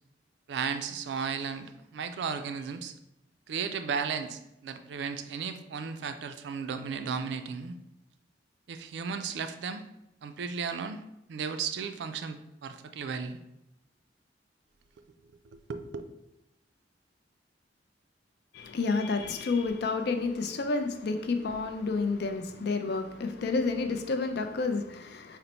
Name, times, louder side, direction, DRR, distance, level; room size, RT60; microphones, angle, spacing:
voice 1, 0.5-2.9 3.5-7.8 8.7-9.8 10.2-11.0 11.3-13.4 15.0-15.1 15.4-15.9, right 6 dB, 65° right, 9 dB, 0.3 m, -35 dB
voice 2, 18.5-25.4, left 4 dB, 60° left, 7 dB, 0.4 m, -30 dB
3.9 x 2.1 x 4.3 m, 0.86 s
head